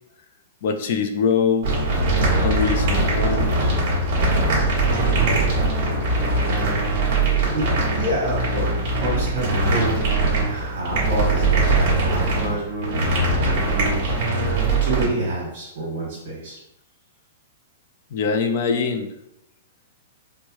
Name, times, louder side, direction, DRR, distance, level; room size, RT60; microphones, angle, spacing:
voice 1, 0.6-1.7 2.4-3.7 18.1-19.1, left 6 dB, 45° left, 7 dB, 0.4 m, -23 dB
sound 1, 1.6-15.0, right 2 dB, 35° right, 1.2 m, -21 dB
voice 2, 7.5-10.1 10.5-16.6, right 1 dB, 55° right, -6 dB, 1.3 m, -29 dB
4.5 x 2.2 x 2.9 m, 0.85 s
hypercardioid pair, 175°, 0 cm